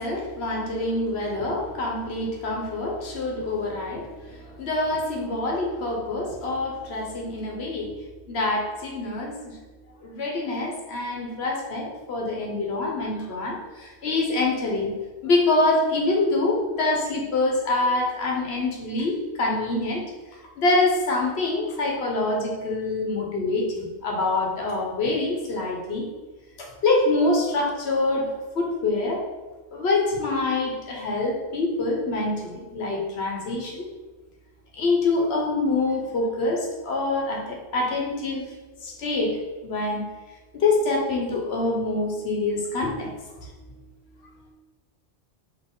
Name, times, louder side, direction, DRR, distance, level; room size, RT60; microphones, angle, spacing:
voice 1, 0.0-9.6 10.0-14.9 15.2-20.0 20.6-26.0 26.6-29.2 29.7-33.8 34.7-38.4 38.8-39.4 39.6-40.0 40.5-43.1 43.4-43.7, left 2 dB, 65° left, 0 dB, 1.1 m, -25 dB
4.1 x 2.9 x 3.7 m, 1.2 s
omnidirectional pair, 1.2 m